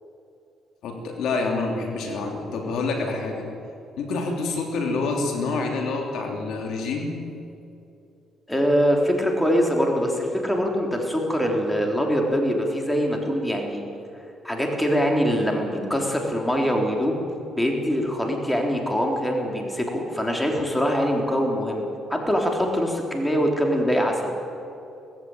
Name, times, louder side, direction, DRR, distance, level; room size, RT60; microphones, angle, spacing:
voice 1, 0.8-3.5 4.0-7.2, left 3 dB, 80° left, 2 dB, 3.1 m, -27 dB
voice 2, 8.5-13.8 14.4-17.2 17.6-21.8 22.1-24.3, equal, 10° left, 1 dB, 3.7 m, -23 dB
18.5 x 15.5 x 9.1 m, 2.7 s
cardioid pair, 90°, 0 cm